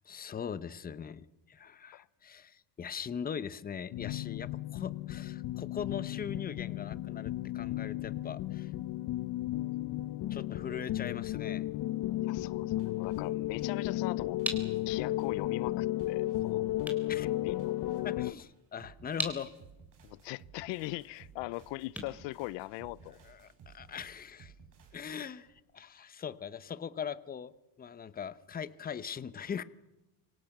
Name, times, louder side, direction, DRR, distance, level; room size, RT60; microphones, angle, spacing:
voice 1, 0.1-8.7 10.3-11.7 17.1-17.3 18.0-19.5 23.2-24.5 24.9-25.5 25.7-27.5 27.8-29.6, left 7 dB, 20° left, 0.9 m, -40 dB
sound 1, 3.9-18.3, left 15 dB, 55° left, 0.9 m, -34 dB
voice 2, 12.3-14.4 14.9-16.7 17.2-17.7 20.0-23.2, left 19 dB, 80° left, 0.7 m, -40 dB
sound 2, 12.4-25.6, right 5 dB, 45° right, 5.1 m, -58 dB
sound 3, 13.8-23.2, equal, 5° right, 3.7 m, -43 dB
27.0 x 24.5 x 6.1 m
cardioid pair, 150°, 43 cm